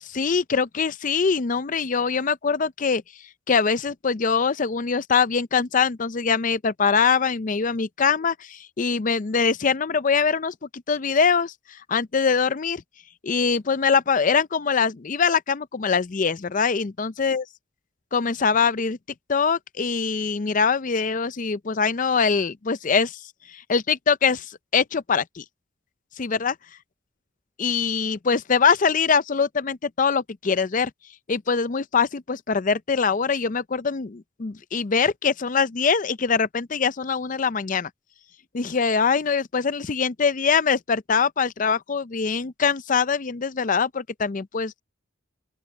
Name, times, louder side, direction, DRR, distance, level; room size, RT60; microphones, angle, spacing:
voice 1, 0.0-3.0 3.5-12.8 13.2-17.5 18.1-19.0 19.3-23.2 23.5-25.4 26.2-26.6 27.6-30.9 31.3-37.9 38.5-44.8, left 5 dB, 40° left, 0.5 m, -23 dB
open air
head